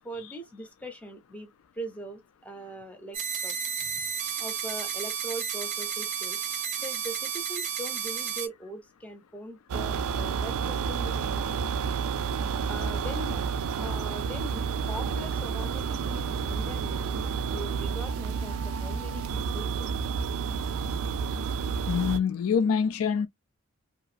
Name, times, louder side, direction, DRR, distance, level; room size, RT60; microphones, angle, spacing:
voice 1, 0.0-1.5 1.7-3.6 4.4-6.4 6.8-11.6 12.7-13.4 13.8-17.3 17.5-20.0, right 1 dB, 5° left, 0.6 m, -41 dB
sound 1, 3.1-8.5, right 7 dB, 35° right, 0.6 m, -32 dB
sound 2, 9.7-22.2, right 6 dB, 80° right, 0.4 m, -30 dB
voice 2, 21.9-23.3, left 6 dB, 75° left, 0.3 m, -25 dB
2.8 x 2.4 x 2.4 m
head